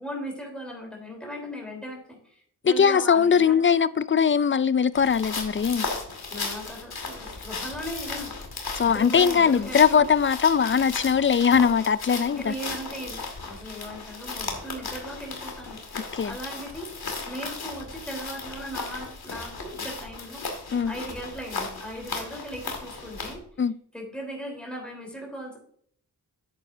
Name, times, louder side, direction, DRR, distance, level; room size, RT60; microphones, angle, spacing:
voice 1, 0.0-3.6 6.3-10.1 12.3-16.9 17.3-20.4 20.8-23.4 23.9-25.6, equal, ahead, 3.7 m, -38 dB
voice 2, 2.6-5.9 8.7-12.5 16.1-16.3 20.7-20.9 23.6-23.7, left 6 dB, 30° left, 0.4 m, -21 dB
sound 1, 4.9-23.4, left 4 dB, 65° left, 2.2 m, -36 dB
10.0 x 8.1 x 2.7 m
cardioid pair, 55°, 40 cm